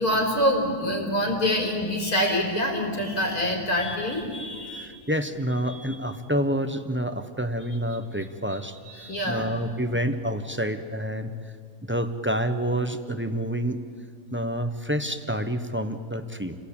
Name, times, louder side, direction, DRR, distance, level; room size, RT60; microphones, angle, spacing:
voice 1, 0.0-4.9 5.7-6.0 8.8-9.5, equal, 80° left, 0 dB, 4.7 m, -26 dB
voice 2, 4.7-8.8 9.2-11.4 11.8-13.8 14.3-16.6, equal, 10° right, 8 dB, 0.9 m, -28 dB
29.0 x 18.0 x 8.8 m, 2.1 s
omnidirectional pair, 1.5 m